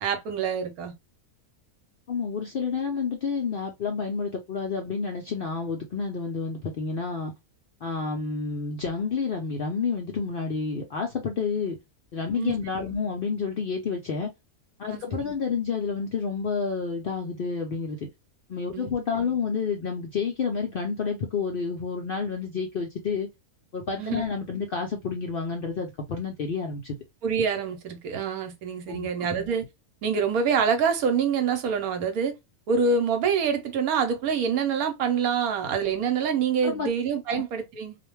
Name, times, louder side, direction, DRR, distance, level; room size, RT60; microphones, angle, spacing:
voice 1, 0.0-0.9 12.3-13.0 14.9-15.3 18.7-19.3 24.0-24.2 27.2-29.6 30.0-32.3 32.7-38.0, right 6 dB, 75° right, 1.1 m, -26 dB
voice 2, 2.1-7.3 7.8-11.8 12.1-14.3 14.8-18.0 18.5-23.3 23.7-27.0 28.9-29.3 36.6-36.9 37.3-37.4, left 5 dB, 75° left, 0.5 m, -29 dB
2.5 x 2.2 x 3.0 m
omnidirectional pair, 1.6 m